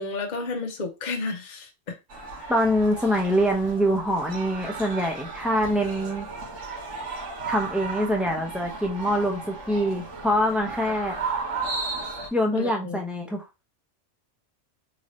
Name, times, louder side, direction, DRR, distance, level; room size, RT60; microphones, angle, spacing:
voice 1, 0.0-1.9 2.4-2.5 10.8-10.9 12.5-13.0, left 3 dB, 45° left, 0.8 m, -32 dB
sound 1, 2.1-12.3, right 4 dB, 75° right, 1.6 m, -35 dB
voice 2, 2.5-6.3 7.5-11.2 12.3-13.4, equal, ahead, 0.6 m, -24 dB
3.9 x 2.7 x 3.1 m
omnidirectional pair, 1.2 m